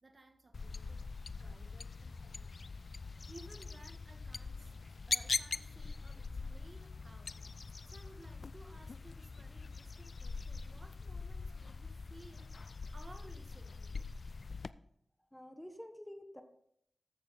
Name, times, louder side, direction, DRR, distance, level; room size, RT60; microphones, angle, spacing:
voice 1, 0.0-2.7 3.3-4.7 5.1-13.9 14.4-14.5, right 2 dB, 45° right, 5 dB, 1.5 m, -59 dB
sound 1, 0.5-14.7, left 4 dB, 60° left, 0.4 m, -42 dB
voice 2, 15.3-16.4, equal, 5° left, 6 dB, 1.2 m, -49 dB
14.0 x 7.0 x 4.1 m, 0.70 s
wide cardioid pair, 65°, 0 cm